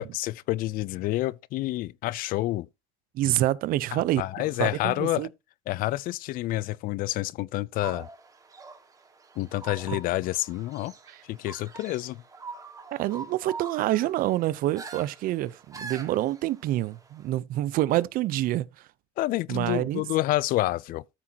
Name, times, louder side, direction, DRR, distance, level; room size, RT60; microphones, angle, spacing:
voice 1, 0.0-2.7 3.9-5.3 5.7-8.1 9.4-10.9 11.3-12.2 19.2-21.0, left 17 dB, 55° left, 0.4 m, -28 dB
voice 2, 3.1-4.2 4.6-5.3 11.1-11.2 12.9-18.7 19.5-20.0, right 15 dB, 55° right, 0.6 m, -27 dB
sound 1, 7.7-17.3, right 4 dB, 20° right, 1.6 m, -44 dB
13.5 x 6.1 x 2.8 m
cardioid pair, 125°, 17 cm